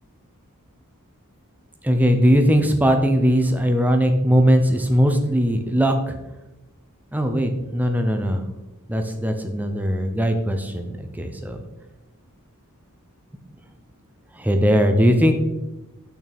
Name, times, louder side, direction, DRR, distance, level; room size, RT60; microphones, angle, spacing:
voice 1, 1.8-6.2 7.1-8.4 8.9-11.6 14.4-15.3, equal, 5° right, 5 dB, 0.6 m, -19 dB
6.7 x 6.1 x 3.5 m, 0.99 s
head